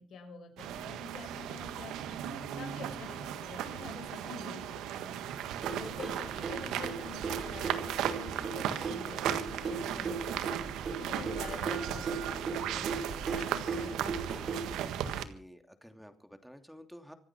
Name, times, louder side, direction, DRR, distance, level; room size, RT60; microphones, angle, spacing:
voice 1, 0.0-1.9 2.6-5.1 5.7-10.6 10.9-12.9 13.3-14.5, left 6 dB, 70° left, 5 dB, 6.2 m, -47 dB
sound 1, 0.6-15.2, right 10 dB, 90° right, 1.6 m, -37 dB
sound 2, 5.6-14.8, right 4 dB, 50° right, 3.6 m, -38 dB
voice 2, 15.0-17.1, equal, ahead, 7 dB, 2.9 m, -52 dB
25.5 x 8.9 x 6.1 m, 0.43 s
cardioid pair, 90°, 0 cm